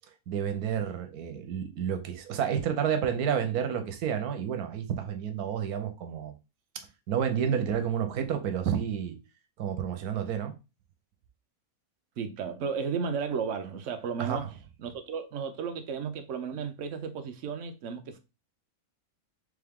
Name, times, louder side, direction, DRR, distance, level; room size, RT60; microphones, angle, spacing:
voice 1, 0.3-6.3 7.1-9.2 9.6-10.5 14.2-14.5, right 8 dB, 85° right, 1.2 m, -30 dB
voice 2, 12.2-18.2, right 6 dB, 65° right, 0.9 m, -34 dB
3.5 x 3.5 x 3.5 m
omnidirectional pair, 1.6 m